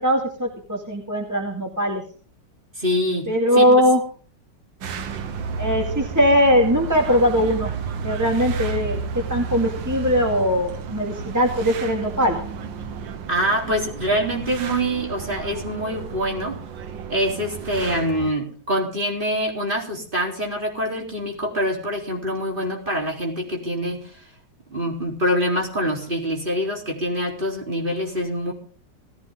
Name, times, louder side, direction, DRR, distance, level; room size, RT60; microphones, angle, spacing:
voice 1, 0.0-2.0 3.3-4.0 5.6-7.7 8.0-12.4, equal, 10° right, 1 dB, 2.2 m, -20 dB
voice 2, 2.8-3.8 13.3-16.6 17.1-24.2 24.7-28.5, equal, 25° right, 0 dB, 4.0 m, -25 dB
sound 1, 4.8-18.3, right 5 dB, 85° right, 1.9 m, -32 dB
19.0 x 15.5 x 3.7 m, 0.43 s
omnidirectional pair, 2.0 m